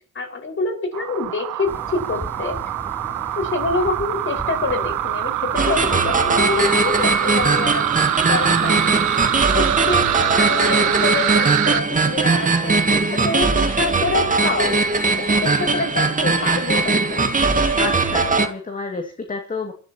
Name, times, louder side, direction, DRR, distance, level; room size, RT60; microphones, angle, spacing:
voice 1, 0.1-2.6 3.1-9.1 9.6-12.8 13.1-14.8 15.2-17.3, left 3 dB, 40° left, 3 dB, 5.5 m, -26 dB
sound 1, 0.9-11.8, right 14 dB, 85° right, 0.8 m, -24 dB
sound 2, 1.6-10.3, equal, 5° left, 4.5 m, -37 dB
sound 3, 5.6-18.5, right 3 dB, 25° right, 2.1 m, -20 dB
voice 2, 8.6-8.9 17.8-19.7, left 3 dB, 25° left, 3 dB, 2.4 m, -29 dB
27.0 x 13.0 x 3.0 m, 0.37 s
cardioid pair, 90°, 30 cm